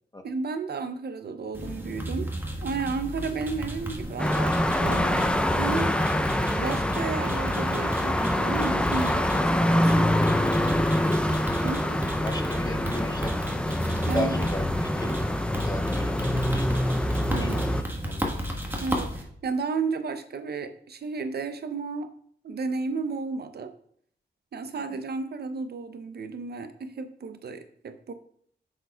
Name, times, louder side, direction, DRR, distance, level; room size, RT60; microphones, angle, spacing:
voice 1, 0.2-2.3 2.6-5.9 6.5-10.1 11.6-12.0 14.1-14.5 17.3-17.7 18.8-22.1 22.4-23.7 24.5-28.1, right 4 dB, 65° right, 9 dB, 0.6 m, -33 dB
sound 1, 1.5-19.2, equal, 10° right, 1.3 m, -35 dB
sound 2, 4.2-17.8, left 1 dB, 5° left, 0.5 m, -25 dB
voice 2, 11.6-12.0 12.2-13.4 14.1-15.2 15.6-16.8 17.4-17.7 18.0-18.4 24.9-25.0, left 1 dB, 20° left, 6 dB, 0.8 m, -36 dB
8.6 x 6.6 x 2.3 m, 0.63 s
wide cardioid pair, 90°, 18 cm